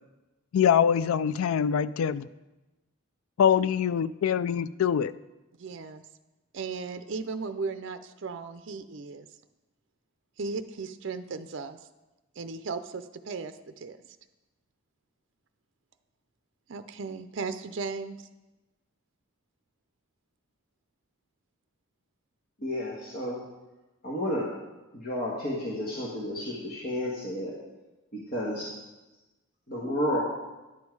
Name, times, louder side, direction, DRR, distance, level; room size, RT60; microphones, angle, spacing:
voice 1, 0.5-2.3 3.4-5.1, left 8 dB, 80° left, 16 dB, 0.3 m, -24 dB
voice 2, 5.6-6.0 6.5-9.3 10.4-11.9 12.4-14.0 16.7-18.3, right 4 dB, 60° right, 9 dB, 0.5 m, -36 dB
voice 3, 22.6-23.4 24.0-24.5 24.9-27.5 28.1-28.7 29.7-30.2, left 1 dB, 45° left, -5 dB, 1.5 m, -31 dB
10.5 x 7.3 x 4.7 m, 1.1 s
head